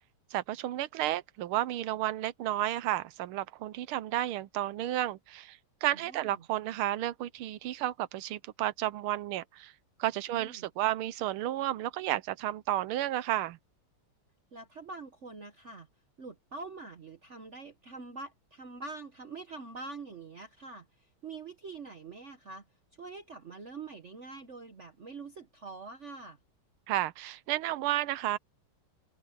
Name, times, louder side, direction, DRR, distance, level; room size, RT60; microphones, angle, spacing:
voice 1, 0.3-9.7 10.0-13.6 26.9-28.4, right 14 dB, 90° right, 1.6 m, -32 dB
voice 2, 5.9-6.4 10.3-10.7 14.5-15.9 16.2-22.6 23.0-26.4, right 3 dB, 45° right, 1.1 m, -45 dB
open air
omnidirectional pair, 2.3 m